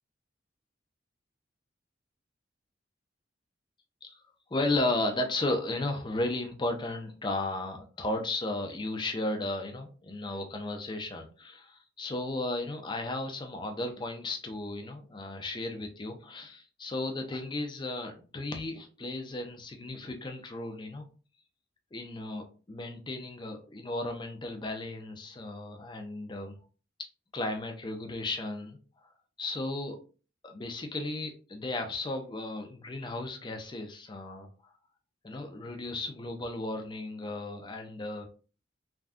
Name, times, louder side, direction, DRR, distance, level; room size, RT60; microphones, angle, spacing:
voice 1, 4.5-21.1 21.9-26.6 27.3-28.8 29.4-30.0 30.4-34.5 35.2-38.3, left 2 dB, 25° left, 5 dB, 0.5 m, -34 dB
3.4 x 2.2 x 2.5 m, 0.36 s
head